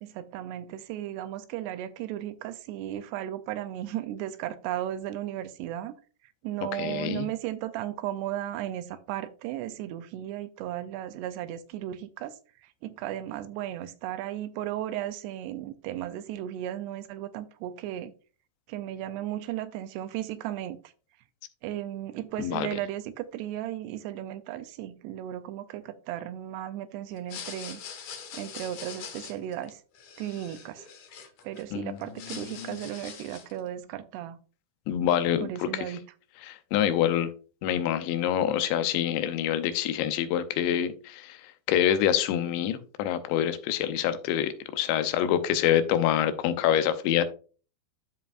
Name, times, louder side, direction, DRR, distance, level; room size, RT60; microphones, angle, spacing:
voice 1, 0.0-5.9 6.4-18.1 18.7-20.8 21.6-27.8 28.3-29.8 30.2-30.9 31.4-34.4 35.4-36.0, right 12 dB, 80° right, 2.5 m, -35 dB
voice 2, 6.8-7.3 22.4-22.7 31.7-32.0 32.6-32.8 34.9-35.7 36.4-37.3 37.6-41.4 41.7-47.2, left 10 dB, 85° left, 3.0 m, -26 dB
sound 1, 27.2-31.6 32.0-33.6, left 7 dB, 65° left, 2.0 m, -43 dB
13.0 x 4.6 x 2.5 m
omnidirectional pair, 5.0 m